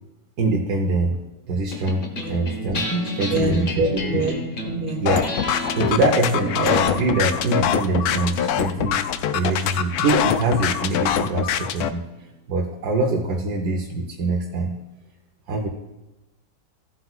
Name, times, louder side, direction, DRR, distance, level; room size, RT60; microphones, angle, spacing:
voice 1, 0.4-1.2 1.5-4.2 5.0-5.3 5.8-9.0 9.3-12.0 12.5-14.7 15.5-15.7, right 2 dB, 85° right, 1 dB, 1.5 m, -23 dB
sound 1, 1.7-12.3, left 1 dB, 35° left, 1.2 m, -33 dB
voice 2, 3.3-5.1, right 1 dB, 65° right, 2 dB, 2.0 m, -26 dB
sound 2, 5.1-11.9, left 9 dB, 75° left, 1.1 m, -23 dB
15.5 x 7.9 x 2.4 m, 1.0 s
omnidirectional pair, 1.6 m